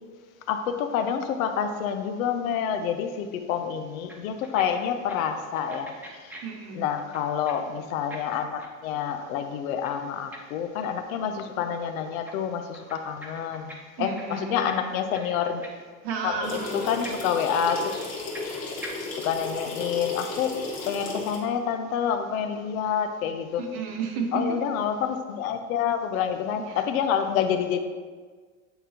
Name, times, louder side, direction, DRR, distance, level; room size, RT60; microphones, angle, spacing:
voice 1, 0.5-5.9 6.2-6.3 6.7-15.6 16.2-17.9 19.2-23.6 24.3-27.8, left 8 dB, 80° left, 7 dB, 0.7 m, -28 dB
sound 1, 4.1-4.6 4.9-7.5 7.8-11.2 11.5-12.3 12.6-13.8 14.0-15.8 16.1-16.3 16.6-16.7 17.0-18.5 18.8-18.9, right 1 dB, 5° right, 0.9 m, -44 dB
voice 2, 6.4-6.9 14.0-14.7 16.0-17.1 23.6-24.6 26.6-26.9, right 4 dB, 60° right, 2 dB, 1.2 m, -32 dB
sound 2, 16.4-21.4, left 3 dB, 40° left, 1.6 m, -35 dB
8.9 x 3.7 x 2.8 m, 1.5 s
supercardioid pair, 110°, 41 cm